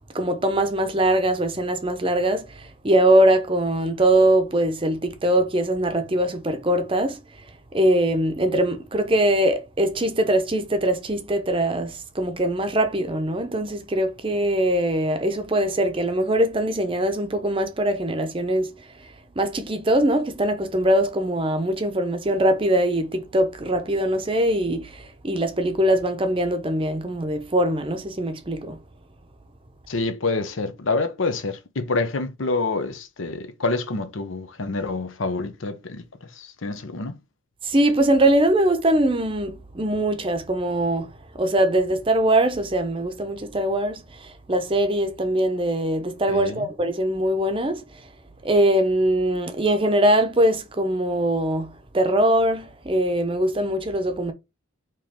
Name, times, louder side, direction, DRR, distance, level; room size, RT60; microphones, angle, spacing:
voice 1, 0.1-7.2 7.7-18.7 19.4-28.8 37.6-41.1 41.3-47.8 48.4-54.3, right 1 dB, 25° right, 0.6 m, -22 dB
voice 2, 29.9-36.0 36.4-37.2 46.3-46.6, left 3 dB, 80° left, 0.8 m, -27 dB
4.5 x 3.1 x 3.6 m
head